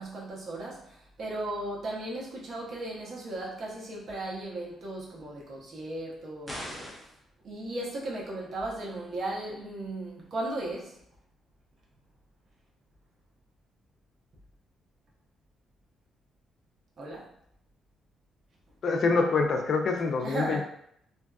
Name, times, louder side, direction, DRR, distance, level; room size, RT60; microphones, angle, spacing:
voice 1, 0.0-7.0 7.4-11.0 17.0-17.3 20.2-20.6, right 1 dB, 60° right, -3 dB, 0.8 m, -36 dB
sound 1, 6.5-7.2, equal, 5° right, 0.6 m, -39 dB
voice 2, 18.8-20.6, left 4 dB, 55° left, 3 dB, 0.4 m, -25 dB
2.5 x 2.3 x 2.3 m, 0.71 s
cardioid pair, 90°, 0 cm